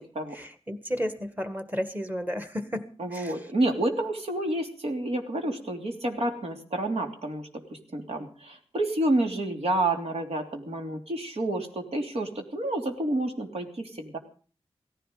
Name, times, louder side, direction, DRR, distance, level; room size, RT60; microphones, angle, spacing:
voice 1, 0.3-3.3, equal, 15° right, 10 dB, 1.9 m, -33 dB
voice 2, 3.0-14.2, right 1 dB, 75° right, 3 dB, 3.1 m, -29 dB
17.0 x 15.0 x 5.2 m, 0.40 s
wide cardioid pair, 90°, 10 cm